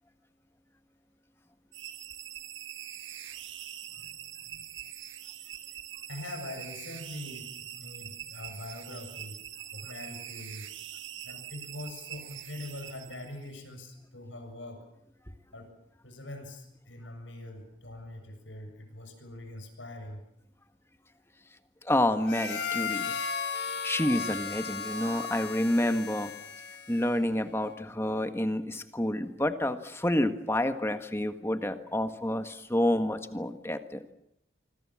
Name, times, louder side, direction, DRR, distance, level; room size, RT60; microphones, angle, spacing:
sound 1, 1.7-13.6, right 11 dB, 75° right, 1.8 m, -43 dB
voice 1, 3.9-4.2 4.5-4.7 5.6-5.7 6.1-9.4 9.7-10.7 11.2-14.8 15.5-15.7 16.0-20.2, left 1 dB, 75° left, 6 dB, 7.3 m, -43 dB
voice 2, 21.8-23.2 23.8-26.3 26.9-34.1, left 1 dB, 10° left, 8 dB, 1.5 m, -29 dB
Harmonica, 22.2-27.3, left 6 dB, 55° left, 2.9 m, -35 dB
26.5 x 24.5 x 7.5 m, 0.81 s
head